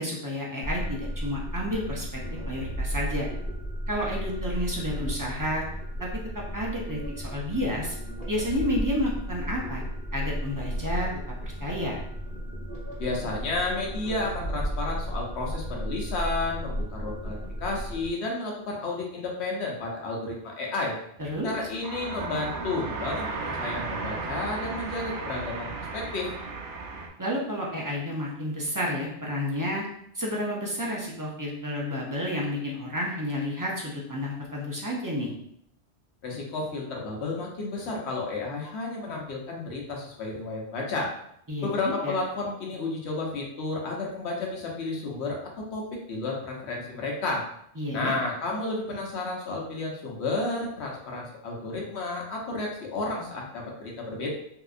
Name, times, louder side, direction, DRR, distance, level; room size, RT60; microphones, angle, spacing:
voice 1, 0.0-2.2 2.5-3.3 3.9-5.6 6.0-6.1 6.3-8.0 8.3-9.8 10.1-11.1 11.4-12.0 21.2-21.5 27.2-29.8 30.1-35.3 41.5-42.1 47.8-48.1, left 1 dB, 25° right, -3 dB, 0.4 m, -30 dB
sound 1, 0.6-18.1, equal, 5° right, 0.9 m, -34 dB
voice 2, 13.0-17.4 17.6-20.9 21.4-26.3 36.2-41.1 41.6-45.4 45.7-45.8 46.1-47.4 47.9-54.3, left 2 dB, 70° left, -1 dB, 1.0 m, -32 dB
sound 2, 21.2-27.1, right 4 dB, 80° right, 0.9 m, -35 dB
3.5 x 2.8 x 2.4 m, 0.72 s
omnidirectional pair, 1.2 m